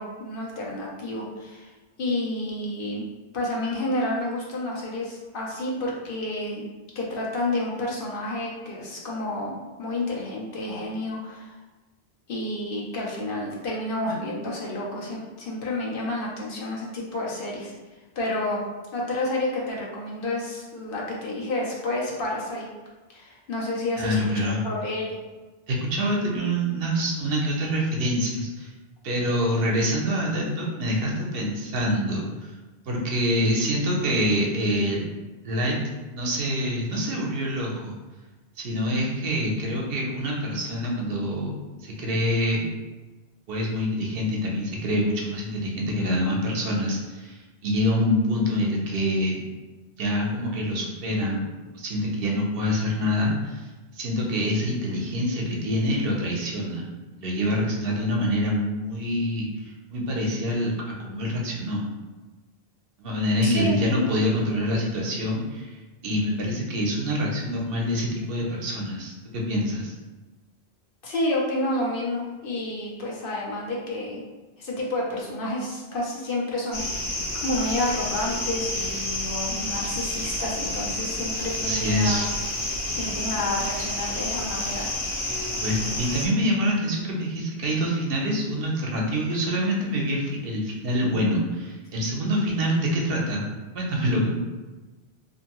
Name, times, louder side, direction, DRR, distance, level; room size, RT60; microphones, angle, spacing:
voice 1, 0.0-1.7 2.0-3.1 3.3-6.6 7.0-11.5 12.3-17.7 18.2-18.6 18.9-22.7 23.1-25.1 63.4-63.7 71.0-74.2 74.6-77.1 77.3-82.3 82.9-84.9, left 1 dB, 65° left, -3 dB, 0.8 m, -30 dB
voice 2, 24.0-24.6 25.7-28.7 29.0-32.5 32.9-35.0 35.4-35.8 36.1-37.9 38.6-41.5 41.8-42.7 43.5-49.4 50.0-53.7 53.9-56.8 57.2-59.5 59.9-60.7 61.0-61.8 63.0-65.7 66.0-69.9 81.6-82.3 85.3-93.5 93.7-94.3, equal, 65° right, -1 dB, 0.8 m, -26 dB
sound 1, 76.7-86.3, left 1 dB, 35° left, 0.6 m, -30 dB
2.6 x 2.6 x 2.9 m, 1.2 s
omnidirectional pair, 1.1 m